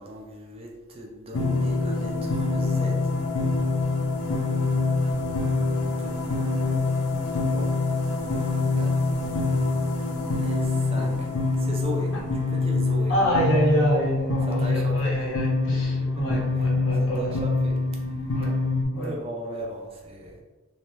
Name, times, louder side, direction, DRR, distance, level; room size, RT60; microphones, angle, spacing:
voice 1, 0.0-3.1 5.0-5.2 5.8-6.2 7.2-7.7 8.8-9.1 10.4-11.3 11.6-12.1 12.5-13.1 14.5-15.2 15.7-16.7 17.0-17.8 18.0-18.2 18.9-20.4, right 1 dB, 25° right, -1 dB, 0.3 m, -37 dB
sound 1, 1.3-18.8, left 3 dB, 85° left, 0.5 m, -25 dB
voice 2, 13.1-17.4 18.3-18.6 18.9-19.1, equal, 60° left, -5 dB, 0.9 m, -26 dB
2.7 x 2.1 x 3.1 m, 1.2 s
head